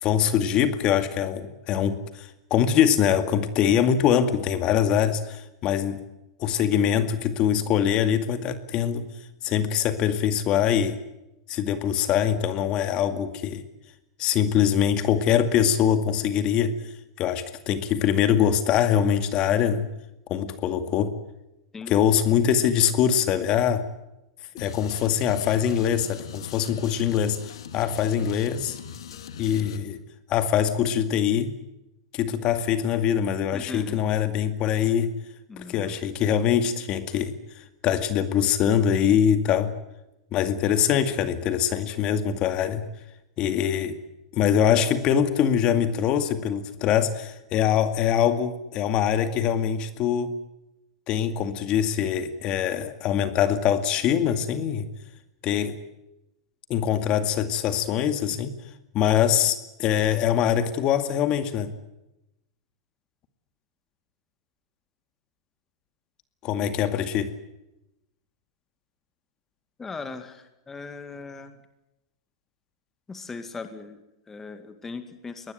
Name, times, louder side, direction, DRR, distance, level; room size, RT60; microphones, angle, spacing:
voice 1, 0.0-6.0 6.4-9.1 9.4-11.0 11.5-13.6 14.2-16.7 17.2-19.9 20.3-21.1 21.9-23.8 24.5-27.4 27.7-28.8 29.4-30.0 30.3-31.5 32.1-35.1 35.6-39.7 40.3-42.9 43.4-44.0 44.3-50.3 51.1-54.9 55.4-55.8 56.7-58.5 58.9-61.7 66.4-67.3, left 9 dB, 35° left, 10 dB, 2.2 m, -23 dB
sound 1, 24.6-29.8, left 7 dB, 85° left, 2.6 m, -40 dB
voice 2, 33.5-34.0 35.5-36.0 69.8-71.6 73.1-75.5, left 4 dB, 15° left, 9 dB, 2.1 m, -39 dB
23.0 x 19.5 x 9.4 m, 0.90 s
supercardioid pair, 140°, 3 cm